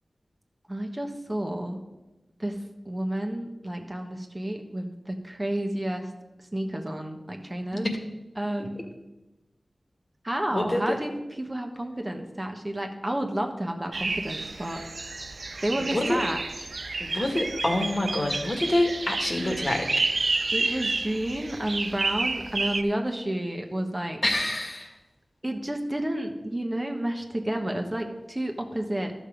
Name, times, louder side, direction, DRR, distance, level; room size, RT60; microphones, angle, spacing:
voice 1, 0.7-1.8 2.4-6.1 6.5-7.9 8.4-8.9 10.2-14.8 15.6-16.7 20.5-24.2 25.4-29.1, right 1 dB, 25° right, 3 dB, 1.3 m, -31 dB
voice 2, 10.5-11.0 15.8-16.2 17.0-19.9 24.2-24.9, left 1 dB, 45° left, 3 dB, 1.8 m, -26 dB
sound 1, 13.9-22.8, right 3 dB, 65° right, 0.5 m, -30 dB
12.0 x 6.4 x 5.2 m, 1.0 s
cardioid pair, 50°, 0 cm